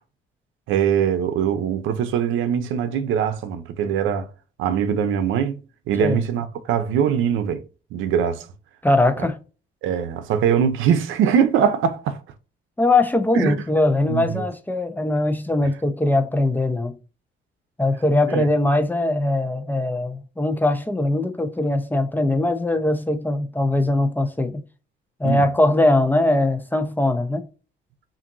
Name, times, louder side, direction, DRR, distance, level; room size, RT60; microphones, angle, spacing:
voice 1, 0.7-4.3 4.6-5.6 5.9-7.6 7.9-8.5 9.2-9.3 9.8-12.2 13.3-13.5 14.1-14.4 18.3-18.5 25.2-25.5, right 8 dB, 90° right, 0.6 m, -22 dB
voice 2, 8.8-9.4 12.8-16.9 17.8-24.6 25.2-27.5, left 2 dB, 10° left, 0.7 m, -21 dB
5.8 x 2.6 x 2.6 m
cardioid pair, 90°, 20 cm